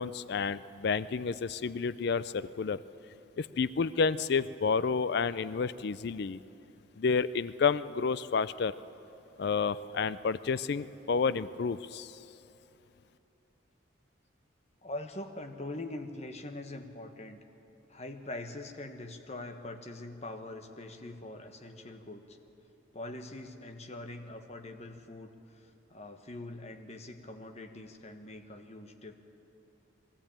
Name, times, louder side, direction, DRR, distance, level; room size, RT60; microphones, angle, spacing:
voice 1, 0.0-2.8 3.4-6.4 7.0-8.7 9.4-12.2, left 5 dB, 55° left, 16 dB, 0.4 m, -30 dB
voice 2, 14.8-17.4 17.9-22.4 22.9-29.1, left 2 dB, 35° left, 5 dB, 1.2 m, -43 dB
21.5 x 14.5 x 8.8 m, 3.0 s
head